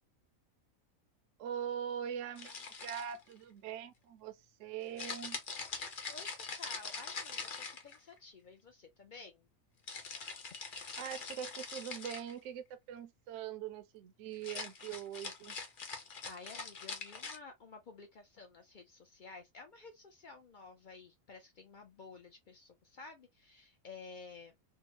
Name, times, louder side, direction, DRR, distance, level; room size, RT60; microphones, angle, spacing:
voice 1, 1.4-5.4 11.0-15.6, right 9 dB, 65° right, 0.8 m, -42 dB
sound 1, 2.3-3.3 5.0-8.2 9.9-12.3 14.3-17.4, left 4 dB, 45° left, 0.7 m, -43 dB
voice 2, 6.1-9.5 16.3-24.6, left 4 dB, 65° left, 0.4 m, -53 dB
3.4 x 2.0 x 2.8 m
omnidirectional pair, 1.5 m